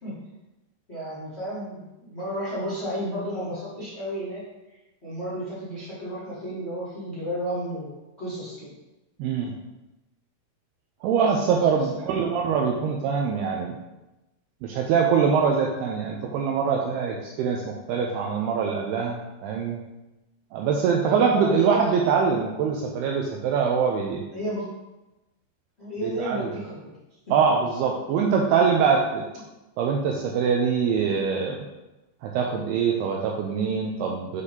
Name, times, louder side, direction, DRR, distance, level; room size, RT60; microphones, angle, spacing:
voice 1, 0.9-4.4 5.0-8.7 11.0-12.4 21.3-21.7 24.3-24.6 25.8-26.9, equal, 25° left, -10 dB, 1.5 m, -33 dB
voice 2, 9.2-9.5 11.0-13.7 14.6-19.8 20.5-24.2 26.0-26.5 27.3-29.3 29.8-31.6 32.2-34.4, right 6 dB, 85° right, 0 dB, 2.3 m, -23 dB
8.0 x 4.8 x 2.8 m, 1.0 s
omnidirectional pair, 5.0 m